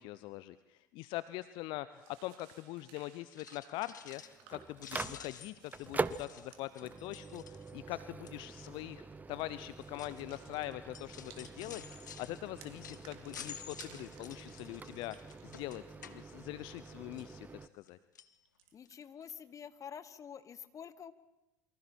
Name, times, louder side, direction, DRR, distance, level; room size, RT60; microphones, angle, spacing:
voice 1, 0.0-4.2 4.5-15.2 15.4-18.0, left 17 dB, 55° left, 15 dB, 0.7 m, -43 dB
sound 1, 1.5-1.6 1.9-7.5 8.8-9.2 9.5-11.7 11.9-16.0 16.3-17.3 18.5-19.3, right 9 dB, 60° right, 2.8 m, -61 dB
sound 2, 3.2-4.5 4.8-7.9 8.3-8.6 9.3-16.9 17.2-17.9 18.1-18.3 18.9-19.0 19.2-19.3, left 8 dB, 80° left, 1.1 m, -52 dB
Microwave oven, 4.0-17.7, right 4 dB, 15° right, 0.8 m, -45 dB
voice 2, 18.7-21.1, left 8 dB, 35° left, 13 dB, 1.4 m, -48 dB
28.0 x 24.0 x 4.5 m, 0.98 s
figure-of-eight pair, 70°, 10 cm